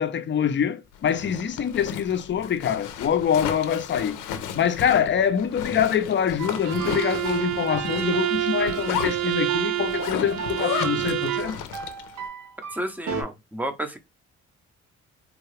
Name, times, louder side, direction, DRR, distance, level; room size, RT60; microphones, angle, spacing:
voice 1, 0.0-4.2 4.5-11.6, left 8 dB, 40° left, 0.5 m, -25 dB
Zipper (clothing), 0.9-12.2, left 8 dB, 90° left, 0.5 m, -34 dB
sound 1, 6.4-13.2, right 4 dB, 75° right, 0.8 m, -36 dB
Bowed string instrument, 6.6-11.6, right 14 dB, 60° right, 0.5 m, -28 dB
voice 2, 12.7-14.0, right 1 dB, 5° right, 0.6 m, -31 dB
3.6 x 2.3 x 3.1 m
cardioid pair, 90°, 30 cm